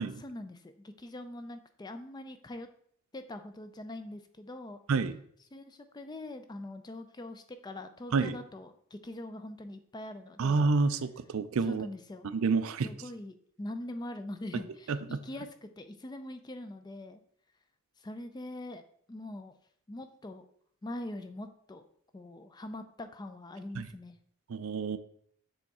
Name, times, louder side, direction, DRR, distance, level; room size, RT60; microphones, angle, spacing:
voice 1, 0.2-2.7 3.1-4.8 5.5-10.7 11.6-12.3 12.8-17.2 18.0-18.8 19.1-19.5 19.9-20.5 20.8-21.8 22.1-24.2, left 1 dB, 20° left, 8 dB, 0.4 m, -43 dB
voice 2, 10.4-11.9 12.3-12.9 14.9-15.0 23.8-23.9 24.5-25.0, right 4 dB, 70° right, 13 dB, 0.4 m, -28 dB
7.1 x 3.5 x 4.1 m, 0.64 s
head